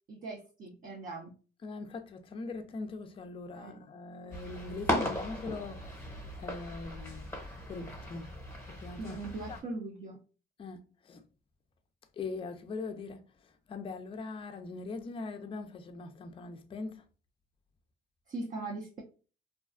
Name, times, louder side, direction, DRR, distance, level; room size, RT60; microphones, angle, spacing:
voice 1, 0.1-1.3 3.5-3.8 9.0-10.2 18.3-19.0, right 2 dB, 45° right, 0.5 m, -40 dB
voice 2, 1.6-6.0 6.4-7.3 7.7-8.3 8.6-9.2 9.5-9.6 10.6-11.2 12.2-13.2 13.7-17.0, left 3 dB, 25° left, 0.3 m, -41 dB
sound 1, 4.3-9.6, left 1 dB, 10° left, 0.8 m, -37 dB
2.4 x 2.2 x 2.3 m
cardioid pair, 90°, 20 cm